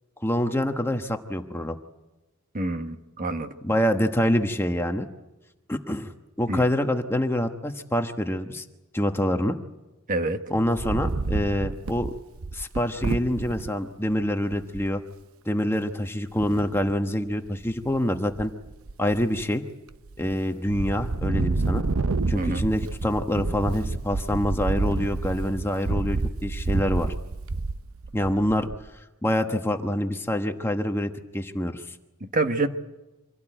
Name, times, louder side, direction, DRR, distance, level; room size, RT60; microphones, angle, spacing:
voice 1, 0.2-1.8 3.6-5.1 5.7-6.1 6.4-8.6 8.9-9.6 10.5-12.1 12.5-15.0 15.4-18.5 19.0-19.6 20.2-21.8 22.3-27.1 28.1-28.7 29.2-32.0, left 1 dB, 10° left, 5 dB, 1.2 m, -26 dB
voice 2, 2.5-3.5 6.5-6.6 10.1-10.4 22.3-22.6 32.2-32.7, right 2 dB, 40° right, 7 dB, 1.3 m, -27 dB
Wind, 10.6-13.7 14.2-14.3 14.5-14.9 16.4-17.0 17.5-18.0 18.3-19.4 19.9-20.4 20.7-28.9, right 3 dB, 75° right, 0.8 m, -29 dB
26.0 x 17.0 x 9.0 m, 1.1 s
head